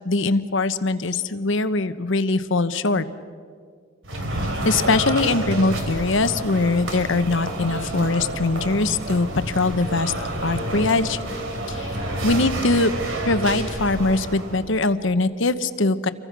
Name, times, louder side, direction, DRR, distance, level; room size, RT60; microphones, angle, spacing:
voice 1, 0.0-3.1 4.6-10.1 10.4-11.2 11.7-12.0 12.2-12.9 13.2-16.1, left 3 dB, 65° left, 11 dB, 1.0 m, -22 dB
sound 1, 4.0-14.7, right 1 dB, 70° right, 3.3 m, -29 dB
28.0 x 23.5 x 6.1 m, 2.1 s
head